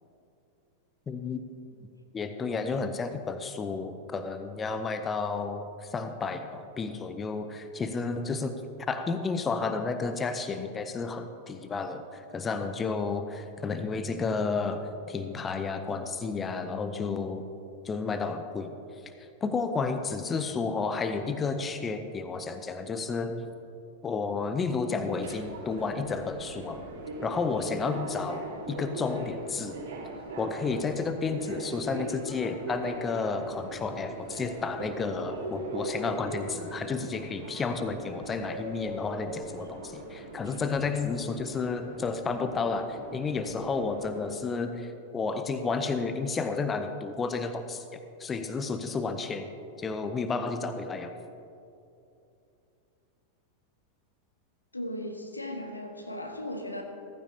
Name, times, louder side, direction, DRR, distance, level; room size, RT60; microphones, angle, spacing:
voice 1, 1.1-1.4 2.1-8.5 8.9-17.4 17.8-18.8 19.4-23.4 24.0-26.8 27.2-29.8 30.4-49.5 49.8-51.1, left 4 dB, 20° left, 8 dB, 0.7 m, -31 dB
Subway metro underground, 25.0-44.3, right 1 dB, 55° right, 3.3 m, -40 dB
voice 2, 54.7-56.8, left 1 dB, 85° left, 3 dB, 1.3 m, -37 dB
15.5 x 14.5 x 2.8 m, 2.7 s
figure-of-eight pair, 90°, 0 cm